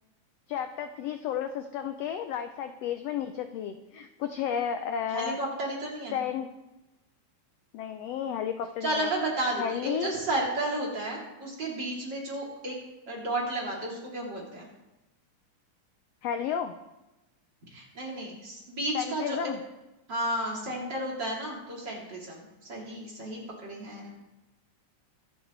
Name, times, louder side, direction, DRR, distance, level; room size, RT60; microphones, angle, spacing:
voice 1, 0.5-5.4 6.1-6.5 7.7-9.1 9.6-10.1 16.2-16.7 18.9-19.6, left 8 dB, 80° left, 8 dB, 1.4 m, -32 dB
voice 2, 5.1-6.2 8.8-12.8 13.1-14.7 17.7-19.5 20.1-24.1, right 1 dB, 35° right, -3 dB, 3.7 m, -32 dB
23.5 x 7.8 x 4.0 m, 1.0 s
omnidirectional pair, 3.6 m